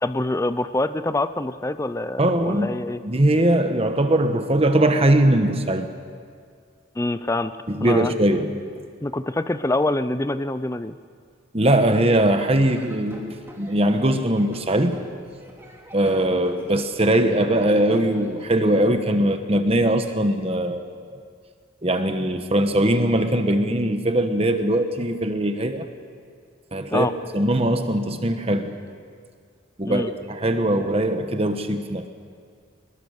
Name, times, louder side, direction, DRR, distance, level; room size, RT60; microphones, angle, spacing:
voice 1, 0.0-3.0 7.0-7.5 7.8-8.1 9.0-11.0 26.9-27.1 29.8-30.1, left 2 dB, 15° left, 12 dB, 0.5 m, -25 dB
voice 2, 2.2-2.8 3.0-5.9 7.7-8.6 11.5-15.0 15.9-21.2 21.8-25.9 26.7-27.1 27.3-28.8 29.8-32.1, right 1 dB, 30° right, 7 dB, 1.2 m, -21 dB
Laughter / Drum, 12.5-18.5, equal, 10° right, 2.9 m, -44 dB
23.0 x 21.5 x 6.6 m, 2.1 s
head